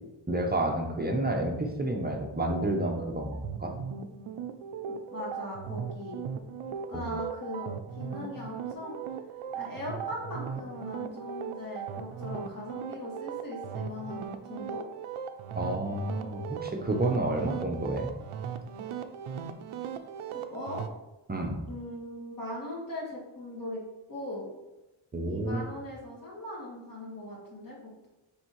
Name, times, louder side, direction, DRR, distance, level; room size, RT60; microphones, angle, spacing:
voice 1, 0.3-3.7 6.9-7.1 15.5-18.1 21.3-21.6 25.1-25.6, right 1 dB, 20° right, 2 dB, 0.6 m, -30 dB
sound 1, 2.3-20.9, right 7 dB, 85° right, 0.6 m, -38 dB
voice 2, 4.9-6.2 6.9-9.0 9.5-14.2 14.5-14.8 20.3-20.8 21.7-23.8 24.1-24.5 25.2-27.8, left 1 dB, 40° left, -4 dB, 1.6 m, -39 dB
9.9 x 3.5 x 3.1 m, 0.99 s
wide cardioid pair, 160°, 48 cm